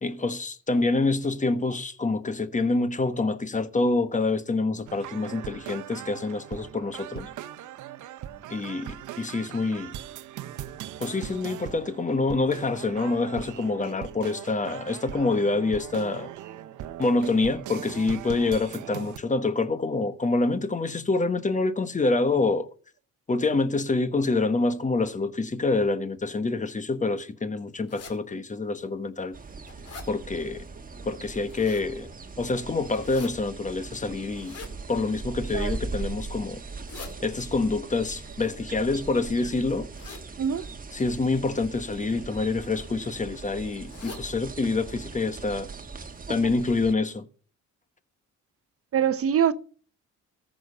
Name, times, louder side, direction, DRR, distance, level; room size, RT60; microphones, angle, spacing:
voice 1, 0.0-7.3 8.5-10.0 11.0-16.3 17.0-22.7 23.3-29.4 30.1-30.6 31.0-32.1 32.4-34.6 34.9-36.6 37.2-39.9 40.9-45.7 46.3-47.3, left 3 dB, 25° left, 1.1 m, -26 dB
sound 1, 4.9-19.2, right 11 dB, 80° right, 0.8 m, -40 dB
sound 2, 27.9-28.2 28.8-28.9 29.3-30.1 31.2-31.9 32.9-33.3 34.3-34.7 35.5-35.9 36.6-37.1 38.2-39.2 39.9-40.3 41.0-41.2 42.2-42.5 42.8-42.9 43.2-43.3 43.8-44.3 44.7-44.8 45.1-45.2 45.7-45.8 46.1-46.2, left 5 dB, 55° left, 2.6 m, -44 dB
sound 3, 29.3-46.9, right 4 dB, 30° right, 1.3 m, -40 dB
voice 2, 48.9-49.5, right 8 dB, 50° right, 0.8 m, -23 dB
14.0 x 6.4 x 5.4 m
cardioid pair, 90°, 30 cm